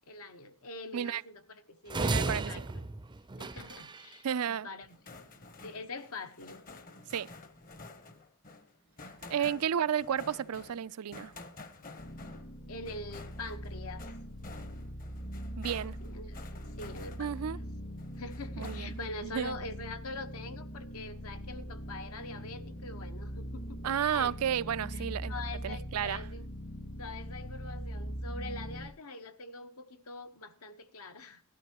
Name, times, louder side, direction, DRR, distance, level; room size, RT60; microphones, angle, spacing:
voice 1, 0.1-2.8 3.4-4.9 5.6-6.6 9.4-9.6 12.7-14.1 16.0-16.4 16.8-17.6 18.2-24.3 24.9-26.4 27.0-31.4, left 2 dB, 75° left, 1.2 m, -44 dB
sound 1, 1.9-4.1, right 3 dB, 20° right, 0.5 m, -34 dB
voice 2, 2.0-2.6 4.2-4.7 7.1-7.3 9.3-11.3 15.6-16.0 17.2-17.6 18.6-19.0 19.2-19.5 23.8-25.3 25.6-26.2, right 8 dB, 80° right, 0.5 m, -32 dB
sound 2, 4.8-17.6 18.0-19.2, left 3 dB, 40° left, 1.0 m, -51 dB
sound 3, 12.0-28.9, equal, 55° left, 2.1 m, -42 dB
17.5 x 12.5 x 3.0 m
head